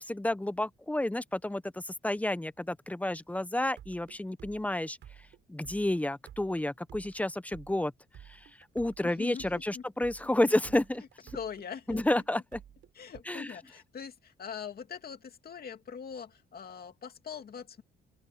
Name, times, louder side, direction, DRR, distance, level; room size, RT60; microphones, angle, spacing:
voice 1, 0.0-5.0 5.5-7.9 8.3-8.4 8.7-11.0 11.9-12.6 13.3-13.5, left 1 dB, 5° left, 0.8 m, -30 dB
sound 1, 3.6-13.2, right 10 dB, 70° right, 4.7 m, -53 dB
voice 2, 9.0-9.8 10.2-10.5 11.3-12.2 12.9-17.8, left 7 dB, 50° left, 2.6 m, -42 dB
open air
cardioid pair, 90°, 20 cm